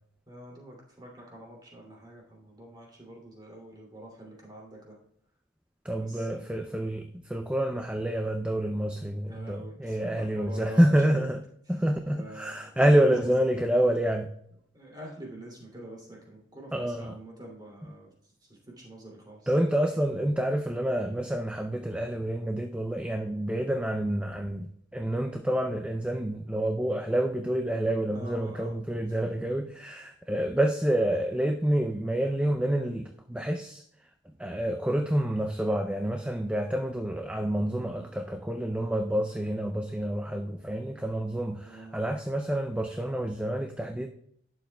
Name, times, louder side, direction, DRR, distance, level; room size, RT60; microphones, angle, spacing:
voice 1, 0.3-5.0 6.0-6.5 9.3-11.3 11.7-11.8 12.2-13.3 14.7-18.1 18.4-19.5 28.1-29.5 41.6-41.9, equal, 20° right, -2 dB, 2.6 m, -46 dB
voice 2, 5.8-11.4 11.7-14.3 16.7-17.1 19.5-33.8 34.4-44.1, right 1 dB, 5° right, 5 dB, 0.4 m, -28 dB
11.5 x 7.3 x 2.2 m, 0.67 s
head